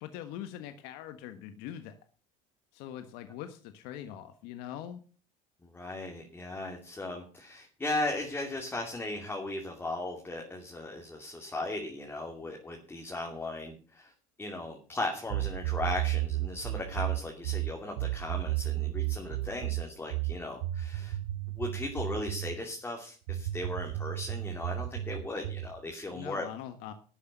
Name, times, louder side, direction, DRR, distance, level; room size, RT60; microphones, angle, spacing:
voice 1, 0.0-2.0 2.7-5.0 26.1-26.9, left 10 dB, 75° left, 9 dB, 1.5 m, -42 dB
voice 2, 5.6-14.1 14.4-21.2 21.6-26.5, left 2 dB, 15° left, 0 dB, 2.7 m, -37 dB
sound 1, 15.3-22.6 23.3-25.8, right 15 dB, 80° right, 0.8 m, -33 dB
12.5 x 8.4 x 6.9 m, 0.38 s
cardioid pair, 125°, 17 cm